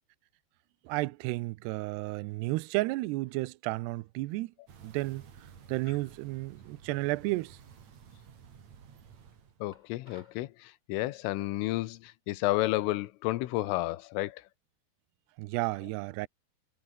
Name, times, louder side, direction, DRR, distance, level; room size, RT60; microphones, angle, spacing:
voice 1, 0.9-4.5 4.8-5.2 5.7-7.6 15.4-16.3, right 20 dB, 90° right, 2.4 m, -32 dB
sound 1, 4.7-9.6, right 7 dB, 45° right, 3.1 m, -53 dB
voice 2, 9.6-14.4, left 17 dB, 85° left, 3.6 m, -31 dB
sound 2, 9.7-10.5, left 1 dB, 10° left, 5.1 m, -58 dB
omnidirectional pair, 5.6 m